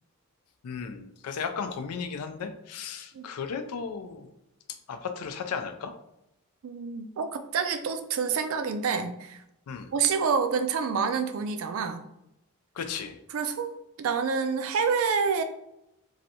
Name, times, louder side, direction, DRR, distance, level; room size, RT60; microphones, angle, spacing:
voice 1, 0.6-4.3 4.9-5.9 9.7-9.9 12.7-13.2, left 6 dB, 85° left, 8 dB, 0.4 m, -35 dB
voice 2, 6.6-9.4 9.9-12.0 13.3-15.4, right 5 dB, 65° right, 9 dB, 0.3 m, -28 dB
3.1 x 2.6 x 2.7 m, 0.82 s
head